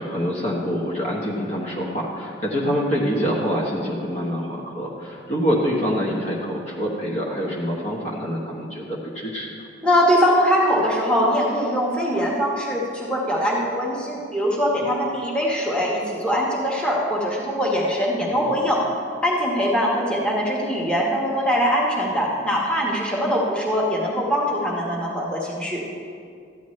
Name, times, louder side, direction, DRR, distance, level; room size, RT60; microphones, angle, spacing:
voice 1, 0.0-9.5 14.7-14.9 18.2-18.6 22.1-22.3, equal, 35° left, -3 dB, 1.1 m, -26 dB
voice 2, 9.8-18.8 19.2-25.8, equal, 5° left, -4 dB, 1.3 m, -22 dB
13.5 x 10.0 x 3.2 m, 2.3 s
head